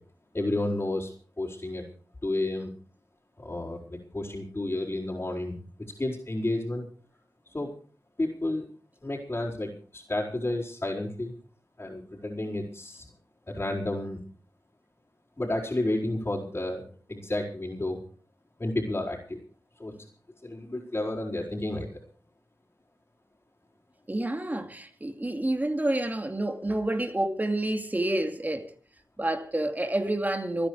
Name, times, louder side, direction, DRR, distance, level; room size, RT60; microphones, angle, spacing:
voice 1, 0.3-1.9 2.2-2.7 3.4-5.6 6.0-6.9 7.5-7.8 8.2-8.7 9.0-11.3 11.8-13.1 13.5-14.2 15.4-16.8 17.1-18.0 18.6-19.4 19.8-20.1 20.4-22.0, left 1 dB, 30° left, 5.0 m, -31 dB
voice 2, 24.1-28.7 29.2-30.7, right 1 dB, 20° right, 2.6 m, -28 dB
26.5 x 10.0 x 4.8 m
cardioid pair, 60°, 7 cm